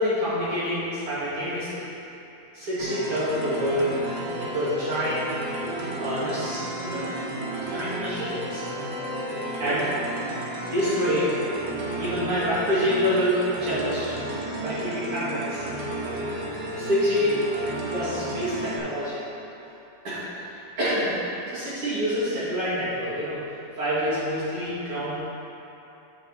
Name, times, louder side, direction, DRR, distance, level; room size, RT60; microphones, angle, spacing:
voice 1, 0.0-1.9 2.5-3.9 4.4-5.3 6.0-7.0 7.5-8.6 9.2-9.8 10.7-11.3 12.0-14.2 14.6-15.7 16.7-19.2 20.0-21.1 21.5-23.4 23.8-25.2, equal, 45° right, -11 dB, 2.5 m, -27 dB
sound 1, 2.8-18.8, right 1 dB, 80° right, 3.1 m, -32 dB
8.7 x 6.7 x 4.1 m, 3.0 s
omnidirectional pair, 4.5 m